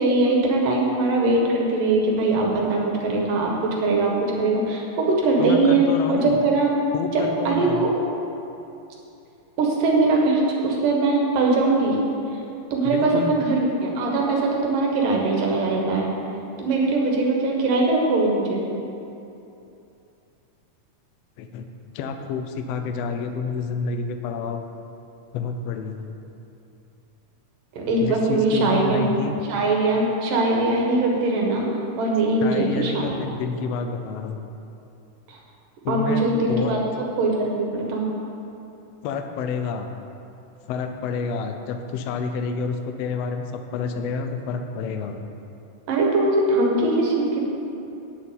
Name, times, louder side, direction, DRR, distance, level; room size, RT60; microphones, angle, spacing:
voice 1, 0.0-6.7 7.1-7.9 9.6-12.0 12.7-16.1 16.6-18.6 27.8-29.1 29.5-31.7 32.0-33.1 35.3-35.4 35.9-36.8 37.2-38.0 45.9-47.4, right 2 dB, 80° right, -1 dB, 3.1 m, -21 dB
voice 2, 5.4-6.4 6.9-7.8 12.8-13.4 21.4-21.7 21.9-24.6 25.3-26.1 28.0-29.3 32.4-34.4 35.8-36.7 39.0-39.9 40.7-45.2, left 5 dB, 80° left, 6 dB, 1.4 m, -29 dB
9.0 x 7.3 x 8.7 m, 2.8 s
omnidirectional pair, 3.9 m